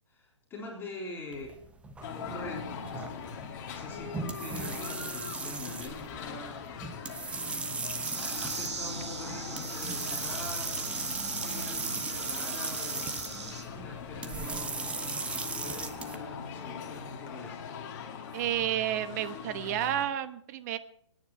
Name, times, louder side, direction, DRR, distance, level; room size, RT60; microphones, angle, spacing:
voice 1, 0.1-1.6 2.2-7.2 8.2-13.2 13.6-17.7, left 2 dB, 15° left, -2 dB, 3.7 m, -44 dB
sound 1, 1.3-16.2, right 4 dB, 10° right, 1.0 m, -37 dB
sound 2, 2.0-20.1, left 7 dB, 40° left, 2.0 m, -42 dB
sound 3, 8.0-13.6, right 4 dB, 70° right, 4.8 m, -41 dB
voice 2, 18.3-20.8, right 11 dB, 35° right, 12 dB, 1.1 m, -31 dB
22.5 x 10.0 x 4.6 m, 0.65 s
hypercardioid pair, 135°, 15 cm